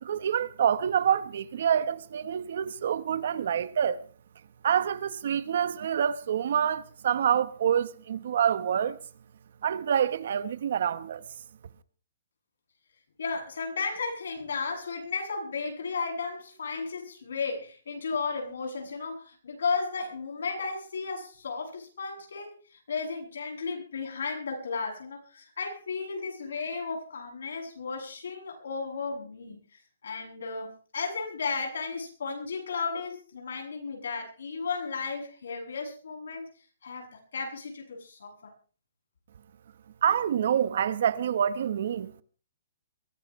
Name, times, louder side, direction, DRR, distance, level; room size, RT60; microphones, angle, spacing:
voice 1, 0.0-4.0 4.6-9.0 9.6-11.2 40.0-42.2, right 8 dB, 50° right, 1.1 m, -27 dB
voice 2, 13.2-22.5 22.9-29.6 30.0-36.4 36.8-38.5, left 4 dB, 80° left, 7.7 m, -34 dB
23.0 x 17.5 x 3.2 m
hypercardioid pair, 175°, 0 cm